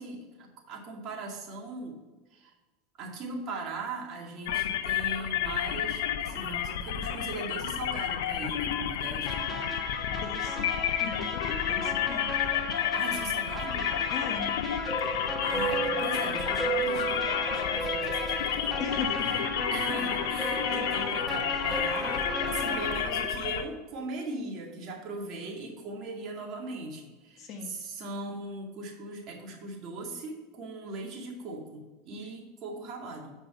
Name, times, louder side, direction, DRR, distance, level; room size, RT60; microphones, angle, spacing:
voice 1, 0.0-2.0 2.3-2.5 3.0-9.5 12.9-13.9 15.4-18.8 19.7-33.3, right 3 dB, 45° right, -1 dB, 2.2 m, -39 dB
sound 1, 4.5-23.6, left 9 dB, 80° left, 0.7 m, -31 dB
sound 2, 9.3-23.0, left 2 dB, 15° left, 1.6 m, -36 dB
voice 2, 10.1-10.7 11.0-12.2 14.1-14.5 18.8-19.5 20.5-20.7 27.4-27.7, left 5 dB, 45° left, 3 dB, 1.6 m, -38 dB
sound 3, 14.9-19.1 19.7-23.3, right 5 dB, 5° right, 1.2 m, -36 dB
8.2 x 5.3 x 4.3 m, 1.3 s
supercardioid pair, 115°, 0 cm